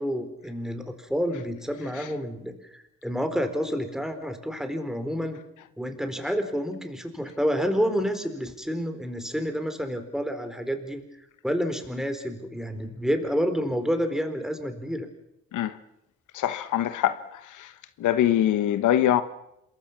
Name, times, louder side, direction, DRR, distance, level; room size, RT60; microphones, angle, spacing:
voice 1, 0.0-5.4 5.8-11.0 11.4-15.1, equal, ahead, 4.3 m, -29 dB
voice 2, 16.3-17.7 18.0-19.2, left 11 dB, 80° left, 1.3 m, -23 dB
27.0 x 22.0 x 6.1 m
cardioid pair, 90°, 30 cm